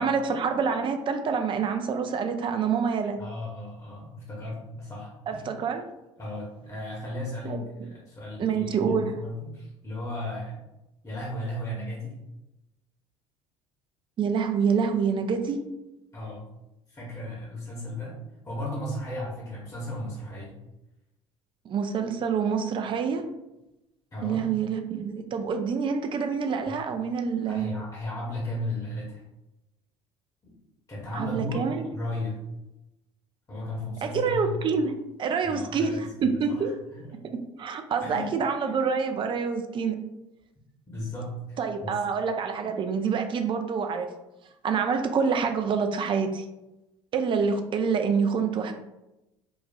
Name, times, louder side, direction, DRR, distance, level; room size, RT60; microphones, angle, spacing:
voice 1, 0.0-3.2 5.3-5.8 7.4-7.9 8.4-9.1 14.2-15.6 21.7-23.2 24.2-27.7 31.1-31.9 34.0-36.7 37.3-40.0 41.6-44.1 44.6-46.5 47.1-48.7, right 6 dB, 30° right, 6 dB, 0.4 m, -27 dB
voice 2, 3.2-5.4 6.2-10.6 11.0-12.2 16.1-16.4 16.9-18.2 18.4-20.5 24.1-24.4 27.5-29.2 30.4-30.5 30.9-32.4 33.5-34.5 35.4-36.6 36.9-37.0 38.0-38.3 40.9-41.9, left 1 dB, 20° left, -4 dB, 1.0 m, -35 dB
4.1 x 2.3 x 2.3 m, 0.94 s
figure-of-eight pair, 60°, 16 cm